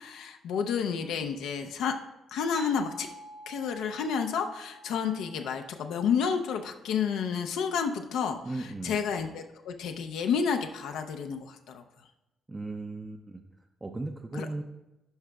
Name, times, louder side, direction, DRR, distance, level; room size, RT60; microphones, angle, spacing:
voice 1, 0.0-1.9 2.3-3.1 3.5-8.4 8.8-11.8 14.3-14.5, left 6 dB, 85° left, 5 dB, 0.4 m, -30 dB
sound 1, 2.5-7.5, right 1 dB, 60° right, 0.7 m, -50 dB
voice 2, 8.4-9.0 12.5-13.4 13.8-14.6, right 2 dB, 20° right, 3 dB, 0.4 m, -36 dB
11.0 x 4.8 x 2.2 m, 0.98 s
cardioid pair, 90°, 0 cm